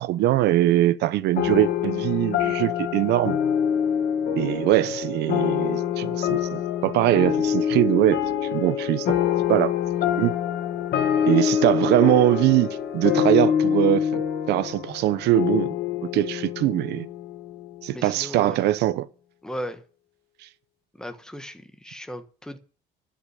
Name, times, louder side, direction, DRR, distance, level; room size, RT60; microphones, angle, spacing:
voice 1, 0.0-3.4 4.4-8.2 8.5-9.1 9.5-9.7 10.1-10.3 11.3-14.2 14.5-15.7 16.1-17.1 17.8-19.1, right 14 dB, 80° right, 0.9 m, -22 dB
sound 1, 1.4-18.2, left 9 dB, 65° left, 2.0 m, -25 dB
voice 2, 17.9-18.6 19.4-19.8 21.0-22.6, equal, 5° left, 1.4 m, -36 dB
12.0 x 5.8 x 8.4 m
cardioid pair, 110°, 17 cm